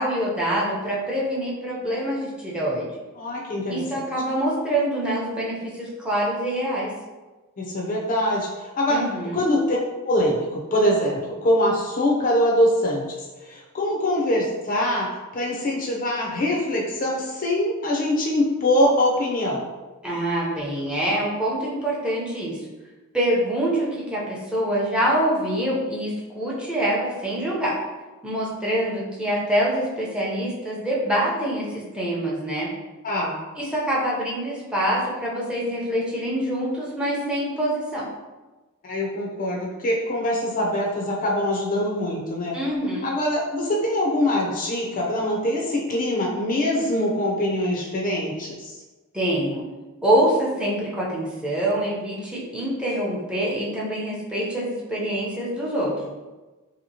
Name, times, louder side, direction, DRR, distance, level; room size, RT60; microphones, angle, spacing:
voice 1, 0.0-2.9 3.7-6.9 8.9-9.4 20.0-22.6 23.1-27.8 28.2-32.7 33.6-38.1 42.5-43.1 49.1-49.7 50.0-56.1, right 1 dB, 5° right, -6 dB, 0.6 m, -25 dB
voice 2, 3.2-4.0 7.6-9.0 9.3-9.8 10.0-13.0 13.4-15.1 15.3-19.6 33.0-33.4 38.8-42.6 43.0-48.8, left 1 dB, 40° left, -2 dB, 0.4 m, -23 dB
2.8 x 2.8 x 2.7 m, 1.2 s
head